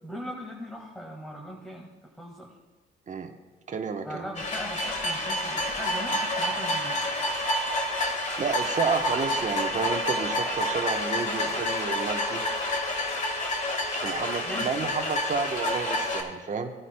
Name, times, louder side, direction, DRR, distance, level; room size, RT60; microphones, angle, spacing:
voice 1, 0.0-2.5 4.0-7.0 14.4-14.7, equal, 5° left, -2 dB, 1.7 m, -39 dB
voice 2, 3.7-4.2 8.4-12.4 14.0-16.7, right 5 dB, 40° right, 3 dB, 1.0 m, -31 dB
sound 1, 4.3-16.2, left 1 dB, 40° left, 1.6 m, -29 dB
17.0 x 9.7 x 2.2 m, 1.4 s
cardioid pair, 90°, 20 cm